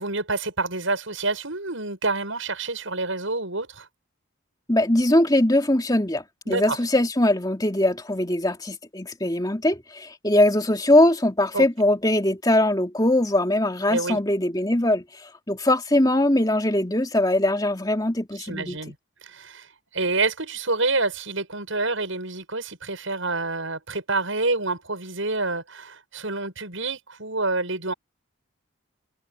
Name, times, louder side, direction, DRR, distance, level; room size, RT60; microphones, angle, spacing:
voice 1, 0.0-3.9 6.5-6.8 11.5-11.6 13.9-14.2 18.4-18.9 19.2-19.7 19.9-27.9, right 3 dB, 70° right, 7.9 m, -27 dB
voice 2, 4.7-18.8, left 1 dB, 20° left, 3.0 m, -21 dB
head